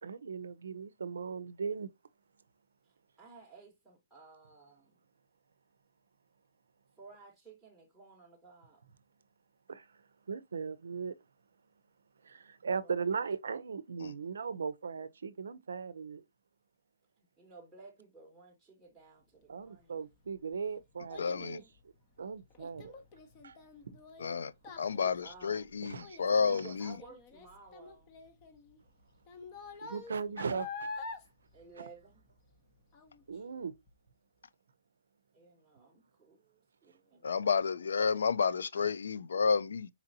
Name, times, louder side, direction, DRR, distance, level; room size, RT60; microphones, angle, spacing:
voice 1, 0.0-1.9 9.7-10.0 10.3-11.1 12.2-16.2 19.5-21.6 22.2-23.0 23.4-23.6 23.8-24.0 25.8-26.7 29.8-30.9 31.8-31.9 33.3-33.7 38.8-38.9, right 5 dB, 85° right, 0.4 m, -38 dB
voice 2, 2.9-5.0 7.0-8.8 12.8-13.1 17.2-19.9 24.7-25.7 26.4-28.2 31.5-32.2 35.3-37.6, right 4 dB, 5° right, 0.9 m, -55 dB
Child speech kid speaking, 19.9-32.6 32.9-33.4 33.9-34.0, left 4 dB, 30° left, 0.7 m, -47 dB
voice 3, 21.2-21.6 24.2-24.5 24.8-26.9 37.2-39.9, left 5 dB, 80° left, 0.3 m, -30 dB
4.1 x 2.7 x 2.6 m
hypercardioid pair, 160°, 0 cm